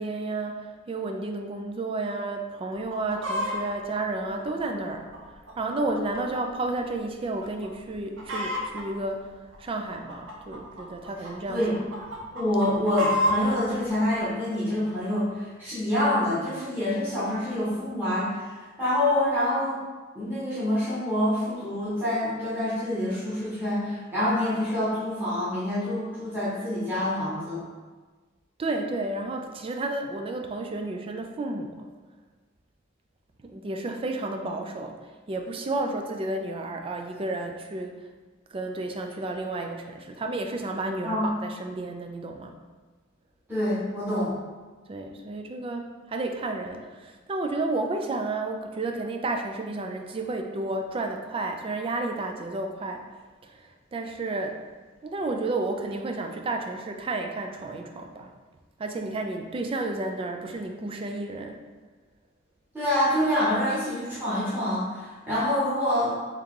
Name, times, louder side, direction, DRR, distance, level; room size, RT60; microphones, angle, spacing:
voice 1, 0.0-5.1 5.6-9.3 9.6-11.7 28.6-31.8 33.4-35.0 35.3-38.0 38.5-42.5 44.9-53.1 53.4-54.6 55.0-58.3 58.8-61.6, right 2 dB, 25° right, 4 dB, 0.3 m, -31 dB
Chicken rooster, 2.7-3.6 4.2-6.4 6.8-6.9 7.4-7.7 7.9-8.8 9.5-11.3 11.7-13.5 14.2-14.3, equal, 65° right, 0.7 m, -30 dB
voice 2, 11.5-18.4 18.8-19.8 20.1-27.6 41.0-41.3 43.5-44.3 62.7-66.1, left 1 dB, 10° right, -12 dB, 1.1 m, -26 dB
3.6 x 2.9 x 3.6 m, 1.3 s
head